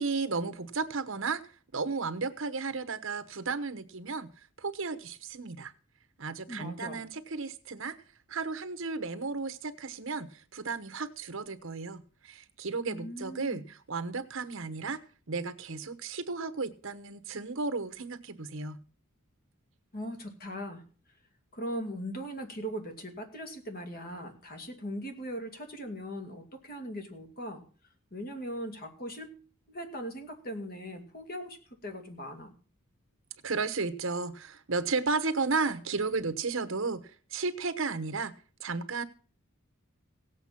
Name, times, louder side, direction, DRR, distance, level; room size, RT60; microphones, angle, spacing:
voice 1, 0.0-1.4 1.7-4.3 4.6-5.7 6.2-7.9 8.3-15.0 15.3-18.8 33.4-38.3 38.6-39.0, right 4 dB, 65° right, 1.1 m, -33 dB
voice 2, 6.5-7.0 12.8-13.6 19.9-20.8 21.5-27.6 28.1-29.4 29.7-31.6 31.8-32.5, equal, 45° left, 2.4 m, -39 dB
17.0 x 8.1 x 5.9 m
head